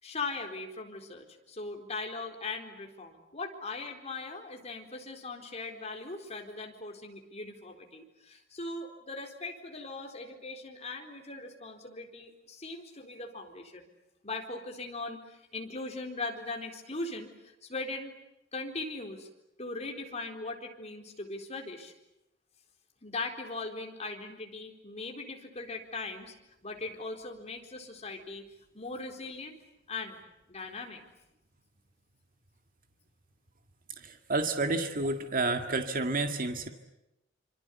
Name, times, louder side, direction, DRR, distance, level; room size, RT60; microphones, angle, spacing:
voice 1, 0.0-13.9 14.2-18.1 18.5-19.3 19.6-21.9 23.0-26.3 26.6-28.4 28.7-29.6 29.9-30.2 30.5-31.0 34.7-34.8, left 3 dB, 35° left, 3 dB, 4.1 m, -39 dB
voice 2, 34.0-36.7, right 3 dB, 45° right, 7 dB, 1.9 m, -30 dB
26.5 x 26.0 x 8.3 m, 0.89 s
head